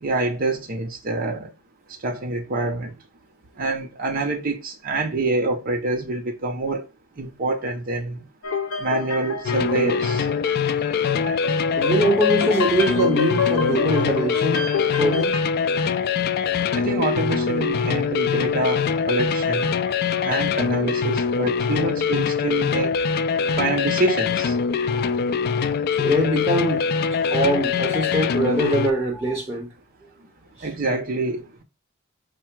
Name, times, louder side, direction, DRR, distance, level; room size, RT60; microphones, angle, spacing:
voice 1, 0.0-1.5 2.0-2.9 3.6-6.9 7.2-8.3 8.8-10.3 16.7-19.7 20.2-23.0 23.6-24.5 30.6-31.6, right 2 dB, 40° right, 0.6 m, -26 dB
sound 1, 8.4-15.4, left 5 dB, 85° left, 0.7 m, -28 dB
sound 2, 9.5-28.9, left 6 dB, 45° left, 0.3 m, -23 dB
voice 2, 11.8-15.4 20.1-20.3 24.8-25.1 25.3-25.4 26.0-26.9 27.2-29.7 30.6-30.7, right 1 dB, 10° right, 1.0 m, -23 dB
4.8 x 2.2 x 4.4 m
head